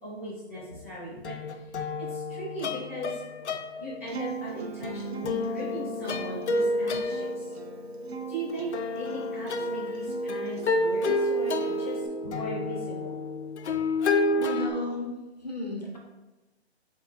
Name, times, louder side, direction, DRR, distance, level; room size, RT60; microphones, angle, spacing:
voice 1, 0.0-1.3 2.1-3.2 3.8-7.5 8.3-13.1, right 1 dB, 15° right, -11 dB, 0.7 m, -38 dB
sound 1, 0.6-0.9 1.2-4.3 4.8-14.7, left 2 dB, 90° left, 0.5 m, -30 dB
Acoustic guitar, 4.1-12.1, right 7 dB, 70° right, 0.6 m, -42 dB
voice 2, 14.4-16.0, left 1 dB, 40° left, -1 dB, 0.7 m, -34 dB
5.1 x 3.7 x 2.5 m, 1.1 s
hypercardioid pair, 180°, 33 cm